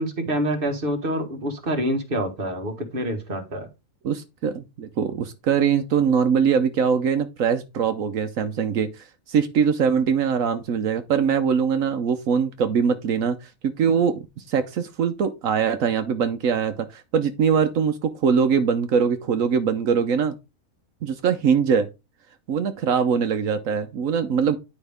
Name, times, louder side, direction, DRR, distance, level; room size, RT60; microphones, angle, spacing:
voice 1, 0.0-3.7, right 1 dB, 40° right, 1.7 m, -26 dB
voice 2, 4.0-20.3 21.0-21.9 22.5-24.6, right 6 dB, 80° right, 1.2 m, -22 dB
10.0 x 5.3 x 3.5 m
omnidirectional pair, 1.4 m